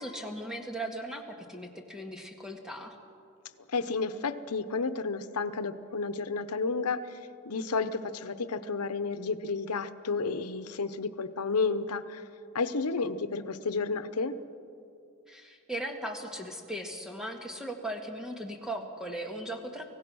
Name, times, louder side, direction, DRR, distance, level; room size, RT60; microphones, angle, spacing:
voice 1, 0.0-3.0 15.3-19.8, right 1 dB, 5° right, 3 dB, 1.7 m, -38 dB
voice 2, 3.7-7.2 7.4-12.2 12.5-14.3, left 4 dB, 90° left, 12 dB, 0.9 m, -31 dB
25.5 x 16.5 x 6.2 m, 2.6 s
head